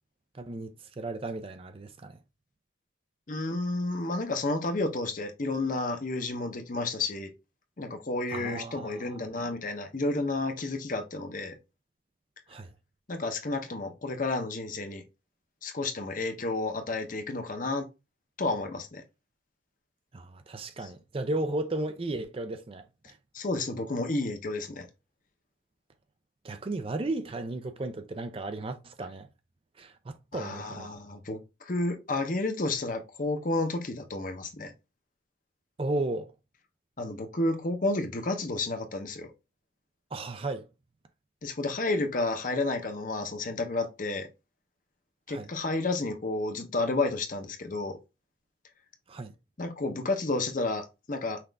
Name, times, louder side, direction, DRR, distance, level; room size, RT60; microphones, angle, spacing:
voice 1, 0.3-2.2 8.3-9.3 12.5-12.7 20.1-23.2 26.4-29.3 29.8-30.9 35.8-36.3 40.1-40.7 45.3-45.5 49.1-49.3, right 2 dB, 30° right, 0.4 m, -35 dB
voice 2, 3.3-7.3 7.8-11.6 13.1-15.0 15.6-17.9 18.4-19.0 20.8-20.9 23.3-24.9 30.3-34.7 37.0-39.3 41.4-44.3 45.3-48.0 49.6-51.4, left 2 dB, 40° left, 0.7 m, -31 dB
5.8 x 2.5 x 3.3 m
head